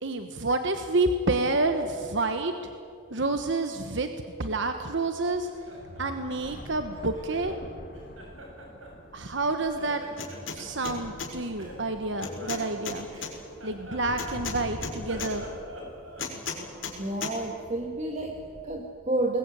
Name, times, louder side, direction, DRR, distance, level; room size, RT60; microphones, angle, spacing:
voice 1, 0.0-2.5 3.1-4.1 4.4-5.5 6.0-7.5 9.1-10.0 10.5-13.1 13.6-15.4, right 2 dB, 60° right, 6 dB, 1.3 m, -28 dB
sound 1, 2.4-2.5 3.1-3.2 4.5-4.6 4.9-18.9, equal, 45° left, 3.5 m, -46 dB
Laughter, 5.3-7.6 7.9-9.5 9.7-10.9 11.6-14.7 15.0-16.9, equal, 80° right, 7.8 m, -46 dB
sound 2, 10.2-10.6 10.8-11.3 12.2-13.3 14.2-15.3 16.2-16.9 17.2-17.3, left 5 dB, 70° left, 5.4 m, -35 dB
voice 2, 17.0-19.4, right 2 dB, 35° right, 2 dB, 1.9 m, -30 dB
25.5 x 21.0 x 9.2 m, 2.4 s
head